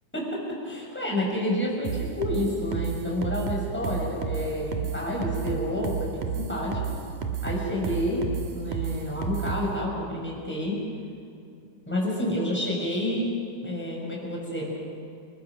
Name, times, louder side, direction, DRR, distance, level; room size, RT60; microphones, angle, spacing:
voice 1, 0.1-6.9 7.4-8.3 8.5-10.8 11.9-13.3 13.6-14.7, left 1 dB, 5° left, -3 dB, 5.8 m, -29 dB
sound 1, 1.8-9.7, right 6 dB, 85° right, 3.1 m, -31 dB
29.5 x 21.0 x 6.1 m, 2.4 s
omnidirectional pair, 3.4 m